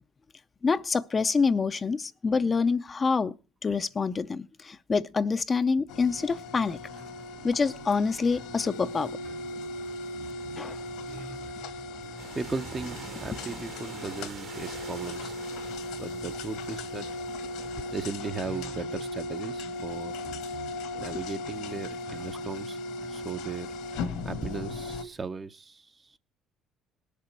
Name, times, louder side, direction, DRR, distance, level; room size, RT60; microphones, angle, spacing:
voice 1, 0.6-3.4 3.6-6.8 7.4-9.1 10.6-10.8 20.9-21.0, left 4 dB, 30° left, 0.5 m, -26 dB
sound 1, 5.9-25.0, left 2 dB, 85° left, 1.9 m, -37 dB
sound 2, 6.7-24.1, right 5 dB, 75° right, 3.4 m, -51 dB
sound 3, 12.2-18.2, right 6 dB, 55° right, 1.6 m, -46 dB
voice 2, 12.3-17.1 17.9-20.2 20.7-22.8 23.1-23.7 24.2-26.2, right 4 dB, 30° right, 0.7 m, -37 dB
19.5 x 6.8 x 4.5 m
cardioid pair, 95°, 0 cm